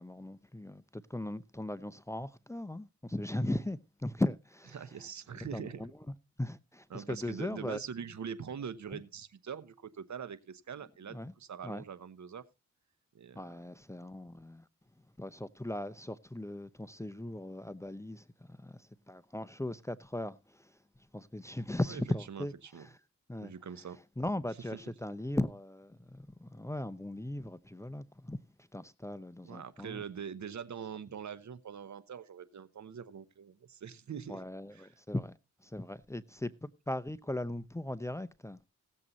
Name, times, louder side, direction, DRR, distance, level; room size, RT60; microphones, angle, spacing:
voice 1, 0.0-4.8 5.5-5.9 6.4-7.8 8.9-9.0 11.1-11.3 11.6-11.8 13.4-14.6 15.2-20.7 21.1-22.5 23.3-23.5 24.2-28.4 28.7-30.0 34.3-35.4 35.6-38.6, left 1 dB, 10° left, 0.7 m, -38 dB
voice 2, 4.7-5.9 6.9-12.4 13.1-13.6 21.9-22.0 22.3-22.9 23.4-24.0 24.7-24.8 29.4-34.4 34.7-34.9, right 7 dB, 65° right, 1.0 m, -43 dB
17.0 x 7.5 x 4.0 m
cardioid pair, 65°, 30 cm